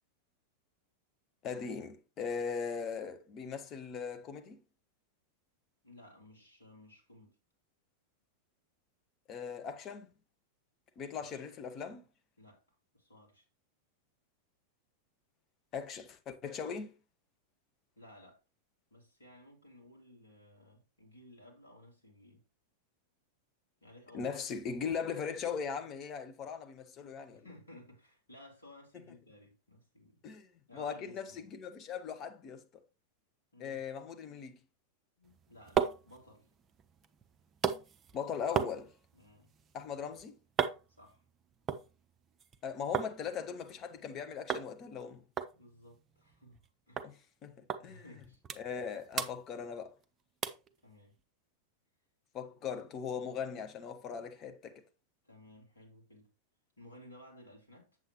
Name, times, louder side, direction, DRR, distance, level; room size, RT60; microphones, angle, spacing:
voice 1, 1.4-4.6 9.3-10.1 11.0-12.0 15.7-16.9 24.1-27.4 30.2-32.6 33.6-34.6 38.1-38.9 39.7-40.4 42.6-45.2 47.0-47.1 47.4-48.0 48.6-49.9 52.3-54.8, left 6 dB, 30° left, 1.0 m, -39 dB
voice 2, 5.8-7.4 12.4-13.4 17.9-18.4 18.9-22.4 23.8-24.4 27.3-30.2 30.7-31.5 33.5-33.9 35.2-36.5 39.1-39.5 41.0-41.2 45.5-47.2 47.8-48.4 50.8-51.2 55.2-56.3 56.8-58.0, left 1 dB, 75° left, 3.2 m, -57 dB
sound 1, 35.2-43.1 43.5-44.1 44.5-44.7 45.0-45.1 45.4-46.7 47.0-47.1 47.7-47.8 48.2-48.9 49.1-50.0 50.4-50.7 51.2-51.3, right 7 dB, 25° right, 0.6 m, -37 dB
7.7 x 7.6 x 3.0 m
figure-of-eight pair, 90°, 0 cm